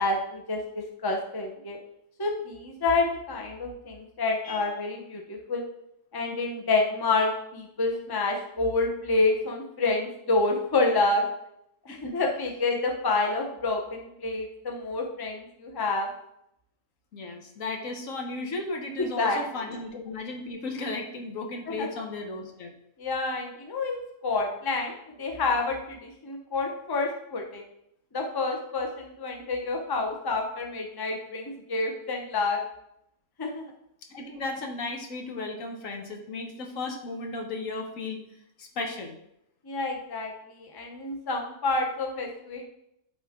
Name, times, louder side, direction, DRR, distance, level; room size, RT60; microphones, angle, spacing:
voice 1, 0.0-1.8 2.2-5.6 6.1-11.2 11.8-16.1 19.0-19.4 21.8-21.9 23.0-27.6 28.1-32.6 33.4-33.6 39.6-42.6, left 3 dB, 20° left, 2 dB, 0.7 m, -28 dB
voice 2, 17.1-22.7 34.1-38.2 38.6-39.1, left 3 dB, 70° left, 3 dB, 1.4 m, -35 dB
11.0 x 4.3 x 3.6 m, 0.79 s
omnidirectional pair, 1.5 m